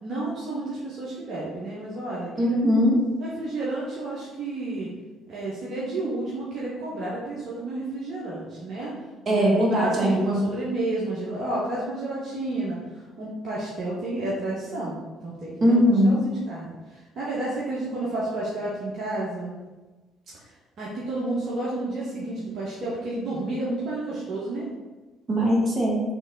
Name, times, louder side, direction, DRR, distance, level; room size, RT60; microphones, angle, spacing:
voice 1, 0.0-2.6 3.2-4.9 5.3-9.0 9.3-12.8 13.2-15.8 16.0-19.6 20.8-24.7, right 2 dB, 55° right, -7 dB, 0.9 m, -31 dB
voice 2, 2.4-2.9 9.3-10.4 15.6-16.2 25.3-26.0, equal, 35° right, -3 dB, 1.3 m, -20 dB
3.4 x 3.2 x 3.7 m, 1.2 s
hypercardioid pair, 50°, 0 cm